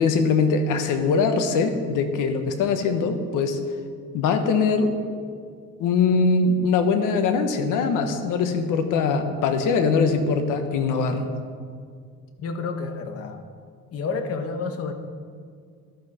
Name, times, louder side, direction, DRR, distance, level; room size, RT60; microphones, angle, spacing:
voice 1, 0.0-3.6 4.1-4.9 5.8-11.3, left 4 dB, 90° left, 7 dB, 1.4 m, -22 dB
voice 2, 12.4-13.4 13.9-14.9, left 4 dB, 50° left, 7 dB, 1.3 m, -30 dB
14.5 x 12.0 x 4.4 m, 2.1 s
cardioid pair, 135°, 31 cm